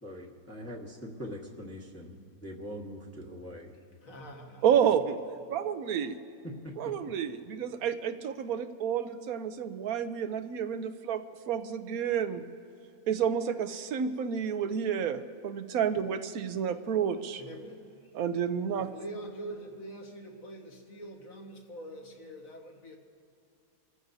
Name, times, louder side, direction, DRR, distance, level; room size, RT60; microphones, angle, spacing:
voice 1, 0.0-3.7 6.4-6.9, equal, 10° left, 1.3 m, -42 dB
voice 2, 4.0-5.0 17.4-17.9 18.8-23.0, right 1 dB, 65° left, 1.9 m, -44 dB
voice 3, 4.6-5.2 5.5-6.2 6.8-12.4 13.1-17.4 18.2-18.9, right 8 dB, 75° right, 1.2 m, -30 dB
29.0 x 14.5 x 2.7 m
omnidirectional pair, 1.6 m